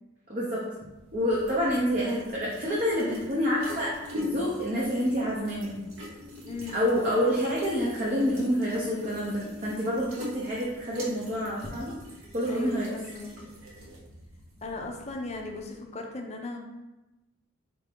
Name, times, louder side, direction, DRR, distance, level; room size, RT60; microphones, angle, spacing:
voice 1, 0.3-0.6 1.1-3.9 4.2-5.8 6.7-11.9 12.3-12.9, equal, 40° right, -6 dB, 0.6 m, -27 dB
sound 1, 0.7-15.8, left 2 dB, 80° right, 0.9 m, -43 dB
voice 2, 6.4-6.8 12.4-13.3 14.6-16.6, left 3 dB, 30° left, 2 dB, 0.4 m, -37 dB
4.3 x 2.6 x 3.4 m, 1.0 s
head